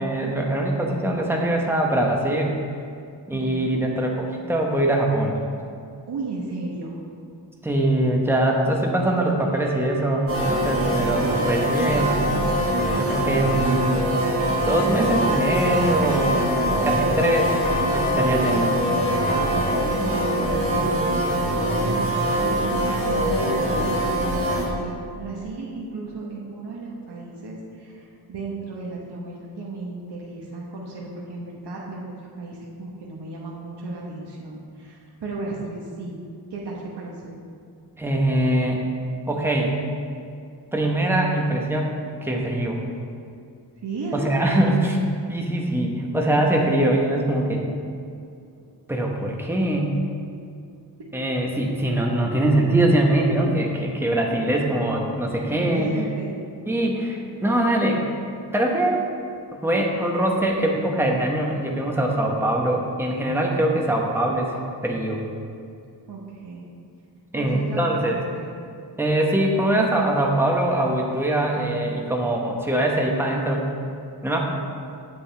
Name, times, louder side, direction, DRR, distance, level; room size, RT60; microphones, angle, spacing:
voice 1, 0.0-2.6 3.3-5.4 7.6-12.2 12.9-14.2 14.7-16.5 16.8-17.6 17.9-18.8 38.0-38.8 39.3-39.7 40.7-41.9 42.2-42.8 44.1-45.0 45.3-47.6 48.9-50.0 51.1-56.0 56.7-58.0 58.5-59.0 59.5-65.2 67.3-68.2 69.0-73.7 74.2-74.4, right 1 dB, 5° right, -1 dB, 1.0 m, -22 dB
voice 2, 3.3-3.9 6.1-7.0 19.5-36.2 36.5-37.4 43.8-44.3 44.6-44.9 55.6-56.4 66.1-66.6 67.3-68.5, right 3 dB, 75° right, -3 dB, 1.2 m, -35 dB
sound 1, 9.5-22.6, right 2 dB, 50° right, 1.4 m, -38 dB
sound 2, 10.3-24.6, equal, 30° right, 1.5 m, -23 dB
8.6 x 7.9 x 3.4 m, 2.4 s
wide cardioid pair, 105°, 41 cm